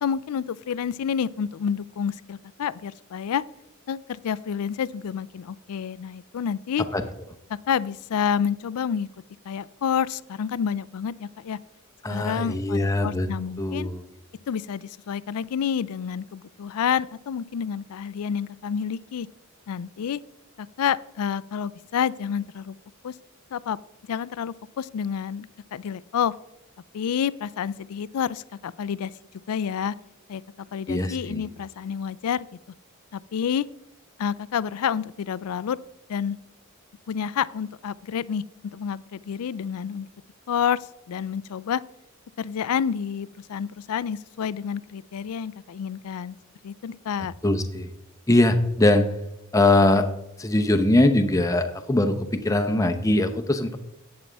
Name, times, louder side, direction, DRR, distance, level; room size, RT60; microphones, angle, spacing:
voice 1, 0.0-3.4 3.9-6.9 7.5-9.1 9.5-11.6 12.1-13.9 14.5-19.3 19.7-20.2 20.6-22.8 23.0-23.1 23.5-23.8 24.1-26.3 26.9-29.1 29.5-29.9 30.3-30.4 30.7-32.5 33.1-33.7 34.2-35.8 36.1-36.4 37.1-38.4 38.7-40.1 40.5-40.8 41.1-41.8 42.4-46.4 46.6-47.3, left 7 dB, 80° left, 19 dB, 0.4 m, -29 dB
voice 2, 12.0-13.3 13.6-14.0 30.9-31.4 47.4-47.9 48.3-49.1 49.5-50.1 50.4-53.8, left 1 dB, 15° left, 6 dB, 0.7 m, -21 dB
11.0 x 8.8 x 3.4 m, 0.86 s
head